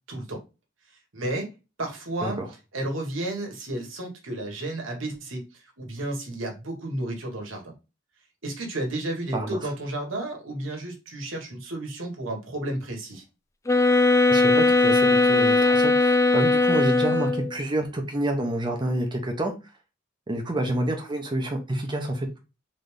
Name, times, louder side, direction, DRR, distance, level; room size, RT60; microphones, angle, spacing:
voice 1, 0.1-0.4 1.1-1.5 1.8-2.4 2.7-5.4 5.8-7.7 8.4-13.2, right 1 dB, 80° right, 1.5 m, -32 dB
sound 1, 13.7-17.6, left 3 dB, 15° left, 0.4 m, -19 dB
voice 2, 14.3-19.5 20.3-22.4, right 1 dB, 25° right, 0.8 m, -28 dB
4.0 x 3.4 x 3.3 m
head